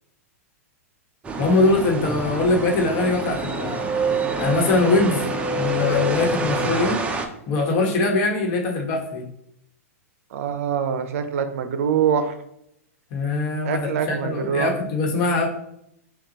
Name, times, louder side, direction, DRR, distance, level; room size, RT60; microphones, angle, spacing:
sound 1, 1.2-7.3, right 2 dB, 15° right, 0.5 m, -26 dB
voice 1, 1.4-3.8 4.4-5.2 5.6-7.0 7.5-9.2 13.1-15.5, left 3 dB, 45° left, 1 dB, 1.2 m, -22 dB
voice 2, 10.3-12.4 13.6-14.7, right 8 dB, 65° right, 9 dB, 0.5 m, -24 dB
6.5 x 2.3 x 2.9 m, 0.78 s
hypercardioid pair, 125°, 8 cm